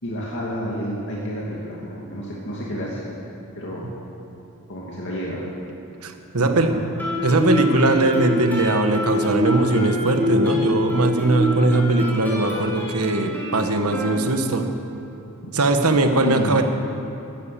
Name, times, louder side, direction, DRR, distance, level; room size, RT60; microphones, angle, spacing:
voice 1, 0.0-3.1 3.6-3.9 4.7-5.4 6.4-6.7 15.4-15.5 16.2-16.6, equal, 55° left, -5 dB, 2.4 m, -30 dB
voice 2, 6.0-6.8 7.2-14.6 15.5-16.6, right 2 dB, 75° right, 6 dB, 1.3 m, -20 dB
Guitar, 7.0-14.7, equal, 10° left, 3.5 m, -25 dB
16.5 x 12.0 x 6.9 m, 2.9 s
head